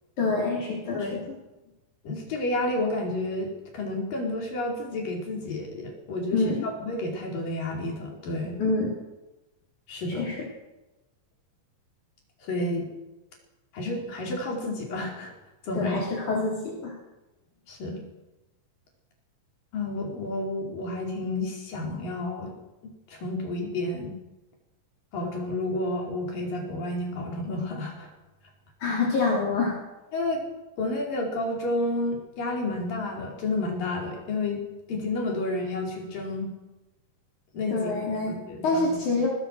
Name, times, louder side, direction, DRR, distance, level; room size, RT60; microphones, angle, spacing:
voice 1, 0.2-1.1 6.3-6.7 8.6-8.9 10.1-10.4 15.8-16.9 28.8-29.8 37.7-38.3 38.6-39.3, left 3 dB, 60° left, -3 dB, 5.1 m, -26 dB
voice 2, 0.9-1.3 2.0-8.6 9.9-10.3 12.4-12.9 13.7-15.3 15.6-16.0 17.7-18.0 19.7-22.5 23.1-24.1 25.1-28.1 30.1-30.4 30.8-34.6 34.9-36.5 37.5-37.9 38.3-39.0, left 2 dB, 75° left, 0 dB, 6.4 m, -30 dB
22.0 x 20.5 x 6.6 m, 1.0 s
omnidirectional pair, 4.0 m